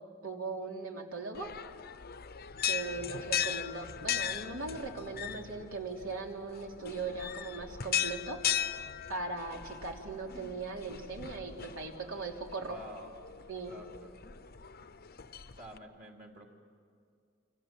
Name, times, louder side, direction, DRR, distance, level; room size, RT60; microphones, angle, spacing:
voice 1, 0.2-1.5 2.6-8.4 9.1-12.8 13.5-13.7, right 3 dB, 75° right, 1 dB, 3.3 m, -39 dB
sound 1, 1.3-15.8, left 9 dB, 45° left, 0.8 m, -38 dB
voice 2, 12.6-13.1 13.7-14.2 15.5-16.5, equal, 40° right, 1 dB, 2.8 m, -49 dB
29.5 x 26.0 x 7.6 m, 2.3 s
head